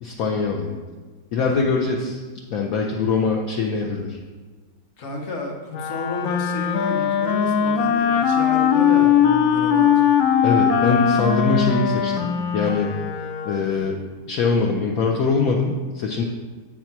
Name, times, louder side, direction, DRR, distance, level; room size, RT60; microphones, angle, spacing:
voice 1, 0.0-0.7 1.3-2.2 2.5-4.2 10.4-12.9 13.5-14.0 14.3-16.2, left 4 dB, 65° left, 1 dB, 0.9 m, -23 dB
voice 2, 5.0-10.1, left 2 dB, 45° left, 2 dB, 1.1 m, -32 dB
Wind instrument woodwind instrument, 5.7-13.8, left 8 dB, 80° left, 1.4 m, -20 dB
8.2 x 4.3 x 5.9 m, 1.4 s
omnidirectional pair, 2.1 m